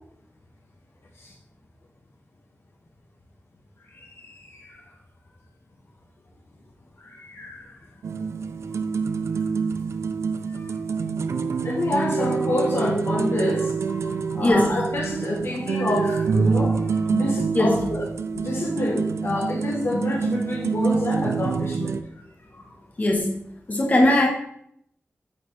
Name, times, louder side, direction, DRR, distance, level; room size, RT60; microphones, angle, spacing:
voice 1, 3.9-4.8 7.0-7.7 10.5-10.7 11.6-22.0 22.5-22.7, left 2 dB, 60° left, 0 dB, 1.2 m, -28 dB
sound 1, 8.0-22.0, right 5 dB, 85° right, 0.4 m, -26 dB
voice 2, 23.0-23.3 23.7-24.3, left 1 dB, 35° left, 0 dB, 1.2 m, -19 dB
8.7 x 3.8 x 3.3 m, 0.69 s
wide cardioid pair, 105°, 5 cm